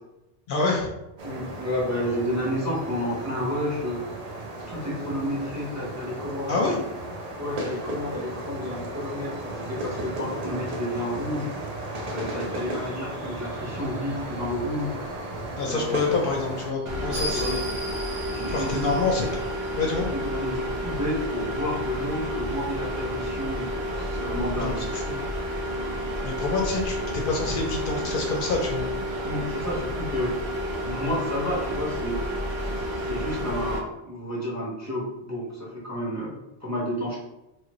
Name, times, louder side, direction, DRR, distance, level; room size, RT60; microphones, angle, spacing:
voice 1, 0.5-0.9 6.5-6.8 15.6-17.6 18.5-19.3 19.8-20.1 24.5-25.2 26.2-28.9, left 3 dB, 65° left, 0 dB, 0.7 m, -27 dB
voice 2, 1.2-4.0 4.7-6.7 7.4-11.5 12.1-15.0 15.6-16.0 17.1-17.6 18.2-19.0 19.9-24.8 29.2-30.4 30.9-32.2 32.6-37.2, left 1 dB, 15° right, -6 dB, 0.9 m, -31 dB
sound 1, 1.2-16.7, right 1 dB, 50° right, 0.5 m, -35 dB
sound 2, 12.5-20.0, equal, 65° right, 1.4 m, -40 dB
sound 3, 16.9-33.8, equal, 85° right, 0.9 m, -30 dB
3.2 x 2.5 x 2.9 m, 0.93 s
omnidirectional pair, 1.0 m